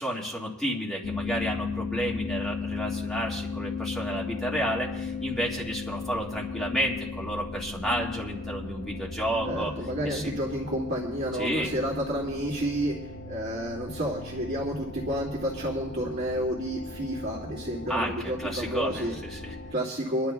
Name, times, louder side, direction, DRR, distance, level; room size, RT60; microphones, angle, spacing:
voice 1, 0.0-9.7 10.0-10.3 11.4-11.7 17.9-19.5, equal, ahead, -4 dB, 1.9 m, -31 dB
sound 1, 1.0-19.7, left 4 dB, 65° left, 0.8 m, -36 dB
voice 2, 9.4-12.9 13.2-19.2 19.7-20.3, equal, 50° right, -7 dB, 2.2 m, -30 dB
26.5 x 11.0 x 2.3 m, 0.99 s
head